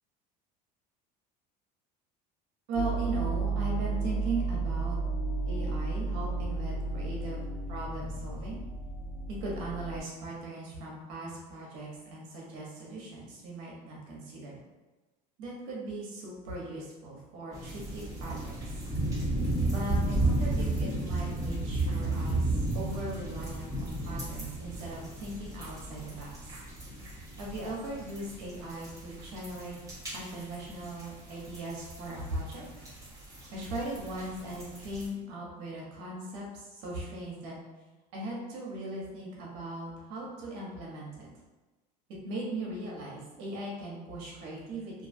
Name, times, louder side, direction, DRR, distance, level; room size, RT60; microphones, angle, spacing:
sound 1, 2.7-10.0, right 3 dB, 30° left, 1.2 m, -33 dB
voice 1, 2.7-5.0 5.5-7.4 7.7-8.6 9.3-14.6 15.4-18.5 19.6-26.3 27.4-29.8 30.1-32.6 33.5-37.5 38.1-41.3 42.2-45.1, right 1 dB, 70° right, -3 dB, 1.0 m, -39 dB
sound 2, 17.5-35.1, right 2 dB, 15° right, 1.1 m, -34 dB
2.6 x 2.3 x 2.6 m, 1.2 s
supercardioid pair, 105°, 21 cm